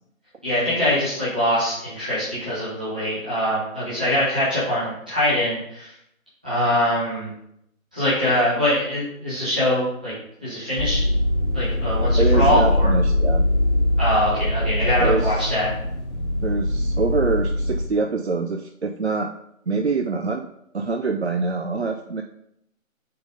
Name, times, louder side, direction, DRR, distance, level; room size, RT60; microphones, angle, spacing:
voice 1, 0.4-5.9 6.4-7.3 7.9-10.1 10.4-11.0 11.5-12.9 14.0-15.7, left 1 dB, 5° right, -13 dB, 0.8 m, -23 dB
sound 1, 10.8-17.8, left 1 dB, 20° left, 1.3 m, -22 dB
voice 2, 12.2-13.4 15.0-15.5 16.4-19.3 19.7-20.4 20.7-22.2, right 4 dB, 55° right, 6 dB, 0.5 m, -25 dB
8.5 x 3.8 x 3.8 m, 0.75 s
figure-of-eight pair, 155°, 41 cm